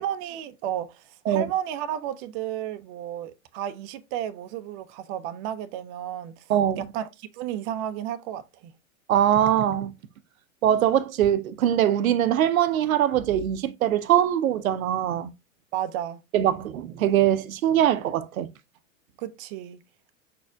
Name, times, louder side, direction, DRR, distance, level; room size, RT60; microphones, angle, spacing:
voice 1, 0.0-6.5 6.8-8.7 15.7-16.2 19.2-19.8, right 10 dB, 40° right, 0.6 m, -32 dB
voice 2, 6.5-6.8 9.1-9.9 10.6-15.3 16.3-18.5, right 10 dB, 80° right, 0.7 m, -22 dB
5.5 x 4.2 x 2.2 m
hypercardioid pair, 105°, 41 cm